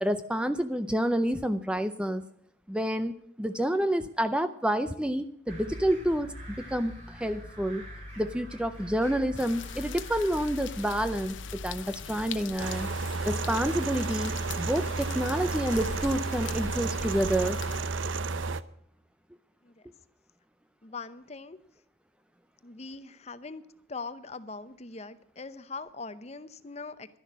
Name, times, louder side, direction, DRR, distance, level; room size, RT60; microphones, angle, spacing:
voice 1, 0.0-2.2 2.7-7.8 8.2-12.9 13.3-17.6, equal, 5° right, 10 dB, 0.5 m, -29 dB
sound 1, 5.5-12.3, left 1 dB, 40° right, 5.5 m, -44 dB
sound 2, 9.3-17.8, left 6 dB, 80° left, 0.8 m, -41 dB
sound 3, 12.6-18.6, right 3 dB, 80° right, 0.6 m, -32 dB
voice 2, 20.8-21.6 22.6-23.6 23.9-27.1, left 4 dB, 35° left, 13 dB, 0.7 m, -41 dB
12.0 x 10.5 x 7.4 m, 0.69 s
head